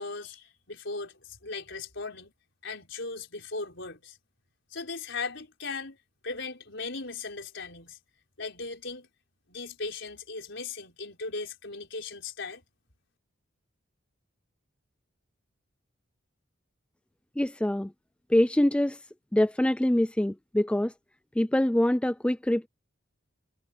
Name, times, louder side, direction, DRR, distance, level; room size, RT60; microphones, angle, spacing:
voice 1, 0.0-2.3 2.6-4.2 4.7-6.0 6.2-8.0 8.4-9.1 9.5-12.6, left 3 dB, 60° left, 5.5 m, -38 dB
voice 2, 17.4-17.9 18.3-19.0 19.3-20.9 21.4-22.7, left 1 dB, 5° left, 0.3 m, -24 dB
head